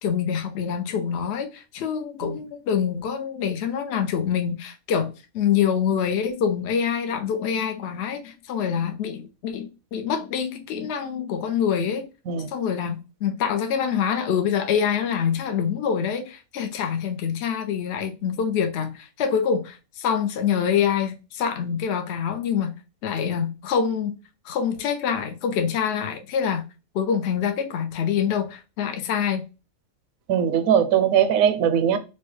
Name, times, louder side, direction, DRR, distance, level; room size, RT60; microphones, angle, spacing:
voice 1, 0.0-12.1 12.5-24.2 24.4-26.6 26.9-29.5, left 7 dB, 65° left, 0.7 m, -25 dB
voice 2, 30.3-32.0, right 8 dB, 80° right, 1.0 m, -20 dB
4.5 x 2.1 x 3.1 m
omnidirectional pair, 1.5 m